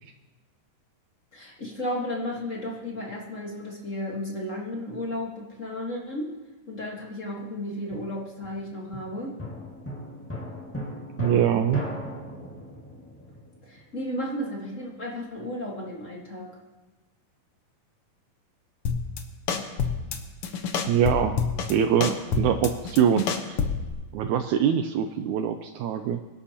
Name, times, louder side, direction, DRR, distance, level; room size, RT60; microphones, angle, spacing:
voice 1, 1.3-6.3 6.7-9.3 13.6-16.5, left 1 dB, 45° left, -2 dB, 1.0 m, -33 dB
sound 1, 7.9-14.3 21.8-22.9, left 1 dB, 20° left, 0.3 m, -39 dB
voice 2, 11.2-11.8 20.9-21.4 21.7-23.6 24.1-26.2, right 9 dB, 90° right, 7 dB, 1.7 m, -23 dB
sound 2, 18.9-19.2 19.5-20.2 20.4-21.7 22.0-23.9, left 6 dB, 80° left, 1.2 m, -27 dB
22.5 x 11.5 x 2.9 m, 1.2 s
omnidirectional pair, 4.0 m